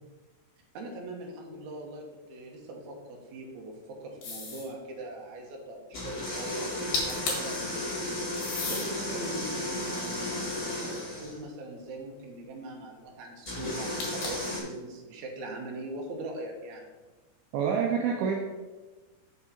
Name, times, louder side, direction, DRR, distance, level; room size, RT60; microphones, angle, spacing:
voice 1, 0.7-7.9 8.7-16.9, right 2 dB, 70° right, 0 dB, 1.8 m, -41 dB
sound 1, 4.2-4.7 6.7-6.8 6.9-7.6 8.4-8.9 9.6-11.0 14.0-14.6, left 4 dB, 55° left, 3.1 m, -35 dB
sound 2, 5.9-11.4 13.4-14.6, left 1 dB, 25° left, 1.6 m, -34 dB
voice 2, 17.5-18.3, right 6 dB, 85° right, 1 dB, 2.2 m, -27 dB
6.9 x 6.7 x 4.3 m, 1.2 s
omnidirectional pair, 5.2 m